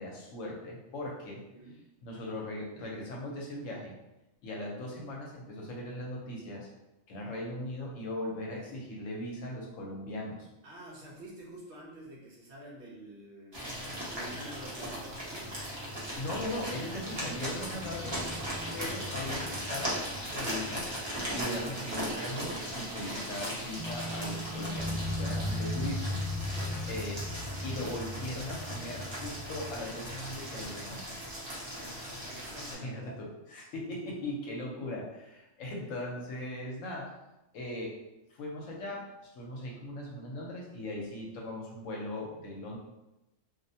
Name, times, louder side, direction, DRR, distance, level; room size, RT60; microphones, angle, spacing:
voice 1, 0.0-1.4 2.0-4.0 4.4-6.7 7.1-10.5 16.2-18.2 18.7-20.9 21.3-26.2 26.9-27.2 27.6-31.1 32.8-37.1 37.5-38.0 38.3-42.8, left 1 dB, 75° left, -1 dB, 0.9 m, -39 dB
voice 2, 10.6-13.6 14.1-15.6 17.7-18.3 26.3-27.0 31.6-33.2, right 1 dB, 65° right, -4 dB, 0.8 m, -49 dB
sound 1, 13.5-32.7, equal, 35° right, 0.4 m, -38 dB
sound 2, 16.7-22.2 22.4-22.6 23.8-30.3, left 1 dB, 45° left, 0.7 m, -39 dB
2.4 x 2.1 x 2.6 m, 0.93 s
omnidirectional pair, 1.4 m